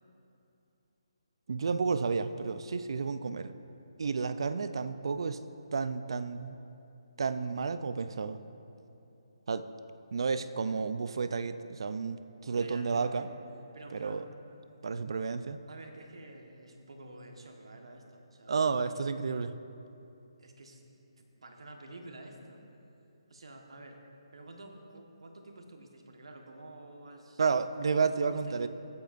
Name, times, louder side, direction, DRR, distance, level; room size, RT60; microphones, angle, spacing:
voice 1, 1.5-3.5 4.0-5.4 5.7-6.6 7.2-8.4 9.5-9.6 10.1-13.3 13.9-14.2 14.8-15.6 18.5-19.5 27.4-28.7, right 5 dB, 60° right, 12 dB, 0.5 m, -31 dB
voice 2, 12.5-13.4 13.7-14.4 15.7-18.7 20.4-20.8 21.2-22.6 23.3-24.0 24.3-27.4 28.0-28.6, right 1 dB, 80° right, 2 dB, 1.3 m, -50 dB
17.0 x 8.2 x 2.6 m, 2.8 s
hypercardioid pair, 165°, 3 cm